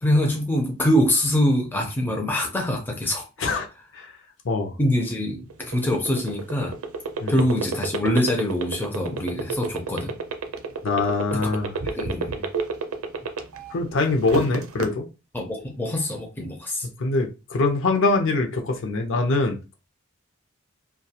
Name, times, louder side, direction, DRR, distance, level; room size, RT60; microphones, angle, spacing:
voice 1, 0.0-3.3 4.8-6.8 7.3-10.1 11.3-11.4 11.8-12.5 15.3-16.9, left 1 dB, 10° left, 0.4 m, -24 dB
voice 2, 4.4-4.8 7.2-7.4 10.8-11.8 13.7-15.1 17.0-19.7, left 3 dB, 65° left, 0.6 m, -23 dB
sound 1, 5.5-13.7 14.1-14.9, right 5 dB, 90° right, 0.5 m, -28 dB
2.3 x 2.2 x 2.8 m
head